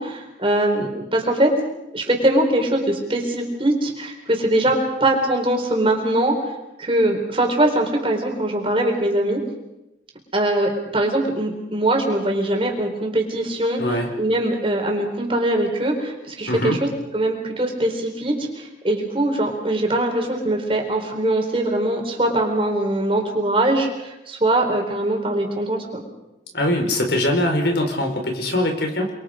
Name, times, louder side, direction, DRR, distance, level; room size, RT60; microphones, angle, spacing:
voice 1, 0.0-1.5 1.9-6.4 6.8-9.4 10.3-16.9 17.1-26.1, right 1 dB, 30° right, 2 dB, 4.3 m, -22 dB
voice 2, 13.8-14.1 16.5-16.8 26.5-29.1, left 1 dB, 70° left, 3 dB, 4.7 m, -22 dB
29.5 x 23.0 x 5.2 m, 0.95 s
head